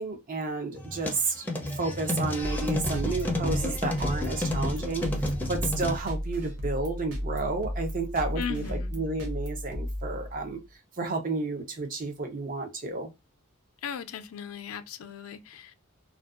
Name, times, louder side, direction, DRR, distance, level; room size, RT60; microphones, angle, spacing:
voice 1, 0.0-1.4 1.7-10.6 11.0-13.1, right 3 dB, 40° right, 0.6 m, -31 dB
sound 1, 0.7-6.0, left 1 dB, 10° left, 0.5 m, -31 dB
sound 2, 2.4-10.6, equal, 80° right, 0.7 m, -34 dB
voice 2, 8.4-9.0 13.8-15.7, left 7 dB, 75° left, 0.4 m, -37 dB
2.5 x 2.3 x 2.4 m
head